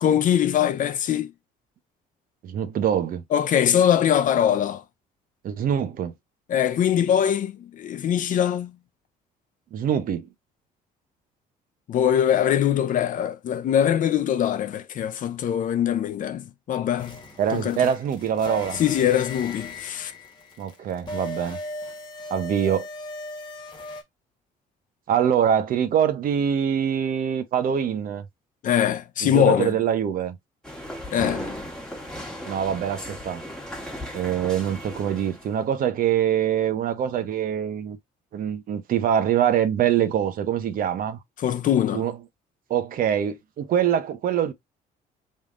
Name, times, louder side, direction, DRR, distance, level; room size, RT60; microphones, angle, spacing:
voice 1, 0.0-1.3 3.3-4.8 6.5-8.7 11.9-17.2 17.5-17.8 18.8-20.1 28.6-29.8 31.1-31.5 41.4-42.1, left 9 dB, 50° left, 0.6 m, -22 dB
voice 2, 2.4-3.2 5.4-6.1 9.7-10.3 17.4-18.8 20.6-21.6 22.3-22.9 25.1-28.2 29.2-30.4 32.5-33.4 34.1-38.0 38.3-41.2 41.9-42.2 42.7-44.5, right 9 dB, 55° right, 0.8 m, -24 dB
sound 1, 17.0-24.0, left 1 dB, 25° left, 1.4 m, -38 dB
sound 2, 30.6-35.6, left 1 dB, 5° left, 1.5 m, -36 dB
3.7 x 2.6 x 3.7 m
cardioid pair, 110°, 17 cm